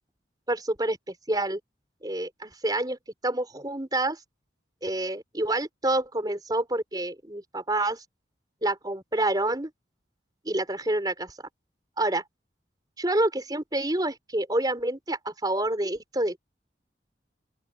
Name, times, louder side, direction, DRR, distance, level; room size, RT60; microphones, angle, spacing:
voice 1, 0.5-1.6 2.0-3.0 3.2-4.2 4.8-8.0 8.6-9.7 10.4-11.3 12.0-12.2 13.0-16.4, right 1 dB, 25° right, 4.3 m, -28 dB
open air
head